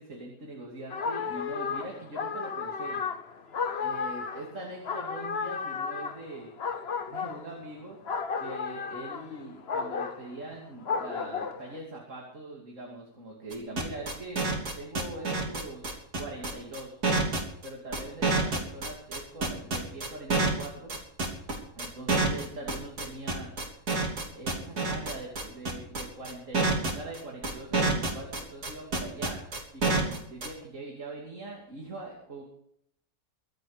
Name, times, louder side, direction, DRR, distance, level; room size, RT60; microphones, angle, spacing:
voice 1, 0.0-3.0 3.8-6.5 7.1-8.0 8.4-14.5 14.7-17.0 17.6-21.0 21.8-23.5 24.3-29.4 29.7-32.4, right 2 dB, 50° right, -1 dB, 3.2 m, -42 dB
sound 1, 0.9-11.8, left 5 dB, 45° left, 1.2 m, -33 dB
sound 2, 13.5-30.5, right 3 dB, 70° right, 3.7 m, -27 dB
24.0 x 8.4 x 5.0 m, 0.72 s
omnidirectional pair, 1.7 m